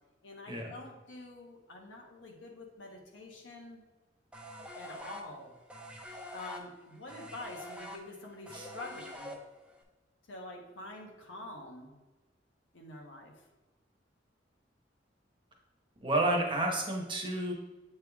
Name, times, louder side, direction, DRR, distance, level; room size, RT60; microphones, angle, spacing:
voice 1, 0.2-3.8 4.7-5.5 6.3-9.3 10.3-11.9 12.7-13.3, left 2 dB, 85° left, 0 dB, 1.2 m, -46 dB
sound 1, 4.3-9.8, equal, 5° right, 0.5 m, -46 dB
voice 2, 16.0-17.5, right 1 dB, 25° right, 0 dB, 1.0 m, -30 dB
7.7 x 3.4 x 3.5 m, 1.2 s
head